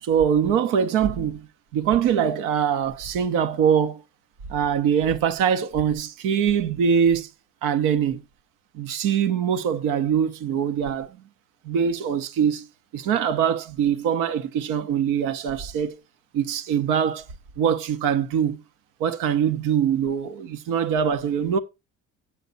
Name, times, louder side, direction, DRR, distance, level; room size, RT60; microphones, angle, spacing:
voice 1, 0.0-1.5 1.7-4.0 4.5-7.3 7.6-8.2 8.7-11.2 11.6-12.7 12.9-16.0 16.3-17.2 17.6-18.6 19.0-21.6, right 8 dB, 80° right, 1.1 m, -23 dB
8.2 x 7.6 x 4.1 m
cardioid pair, 95°, 31 cm